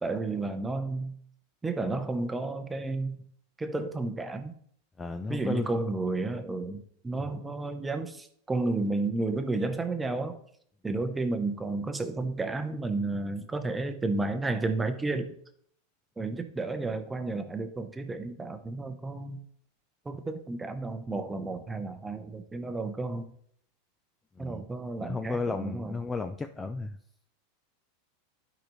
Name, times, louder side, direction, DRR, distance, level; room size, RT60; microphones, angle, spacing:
voice 1, 0.0-1.1 1.6-3.2 3.6-4.6 5.3-10.4 10.8-15.3 16.2-19.4 20.0-23.3 24.4-26.0, right 3 dB, 10° right, 8 dB, 0.7 m, -32 dB
voice 2, 5.0-5.7 24.4-24.6 25.0-27.0, left 4 dB, 10° left, 7 dB, 0.4 m, -33 dB
12.0 x 5.0 x 3.1 m, 0.66 s
supercardioid pair, 140°, 0 cm